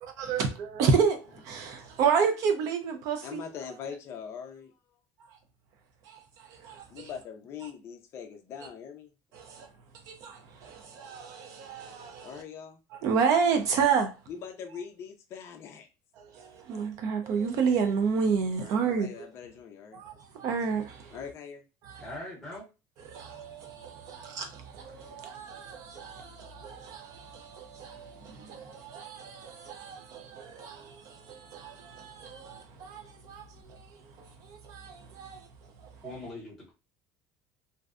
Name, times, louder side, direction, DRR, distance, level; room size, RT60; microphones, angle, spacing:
voice 1, 0.0-3.4 6.1-7.1 9.3-9.7 10.1-12.4 13.0-14.1 16.2-19.3 19.9-21.2 21.8-22.1 23.1-33.9 34.2-35.5 36.0-36.1, right 6 dB, 45° right, 0.4 m, -31 dB
voice 2, 3.2-4.7 6.9-9.1 12.2-12.8 14.3-15.9 18.6-20.0 21.1-21.6, left 7 dB, 35° left, 0.4 m, -42 dB
voice 3, 22.0-22.7 36.0-36.7, left 2 dB, 5° left, 0.8 m, -41 dB
2.5 x 2.0 x 2.4 m
cardioid pair, 180°, 8 cm